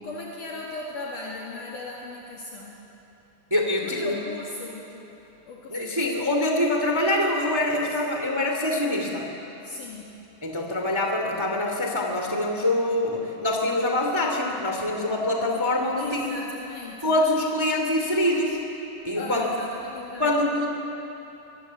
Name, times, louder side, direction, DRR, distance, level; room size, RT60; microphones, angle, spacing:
voice 1, 0.0-2.8 3.8-5.1 5.5-6.1 7.9-8.0 9.6-10.1 16.0-17.2 19.2-20.3, left 3 dB, 60° left, -3 dB, 3.4 m, -37 dB
voice 2, 3.5-4.2 5.7-9.3 10.4-16.3 17.0-18.6 19.0-19.5 20.2-20.7, left 1 dB, 10° right, 2 dB, 1.9 m, -24 dB
24.5 x 21.5 x 7.7 m, 3.0 s
omnidirectional pair, 4.3 m